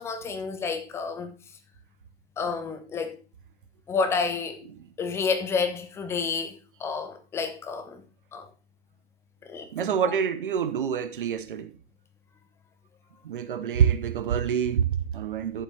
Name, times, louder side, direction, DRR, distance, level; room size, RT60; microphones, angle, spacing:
voice 1, 0.0-1.3 2.4-3.2 3.9-4.6 5.0-8.0 8.3-8.5 9.5-10.1, left 5 dB, 10° left, 0.7 m, -30 dB
voice 2, 9.7-11.7 13.2-15.6, right 8 dB, 50° right, 0.9 m, -26 dB
11.0 x 7.2 x 3.4 m
figure-of-eight pair, 115°, 33 cm